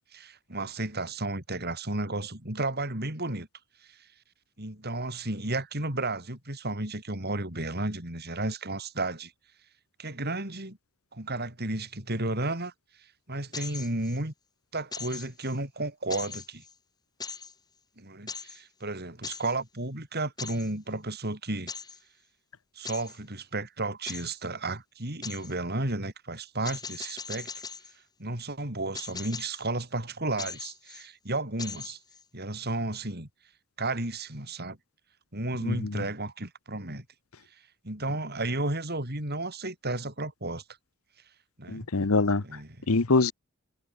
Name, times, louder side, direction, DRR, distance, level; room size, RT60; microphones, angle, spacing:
voice 1, 0.1-3.5 3.9-4.0 4.6-9.3 10.0-10.8 11.1-12.7 13.3-14.3 14.7-16.6 18.0-21.7 22.8-27.5 28.2-32.0 32.3-33.3 33.8-34.8 35.3-37.0 37.8-40.6 41.6-41.9 42.4-42.7, right 2 dB, 50° right, 7.2 m, -33 dB
sound 1, 13.5-14.2 14.9-15.6 16.1-16.7 17.2-17.5 18.3-18.6 19.2-19.6 20.4-20.7 21.7-22.0 22.9-23.2 24.1-24.4 25.2-25.5 26.7-27.9 29.0-29.6 30.4-31.1 31.6-32.2, left 5 dB, 20° left, 2.1 m, -40 dB
voice 2, 35.6-36.0 41.7-42.4 42.9-43.3, left 3 dB, 80° left, 1.0 m, -24 dB
head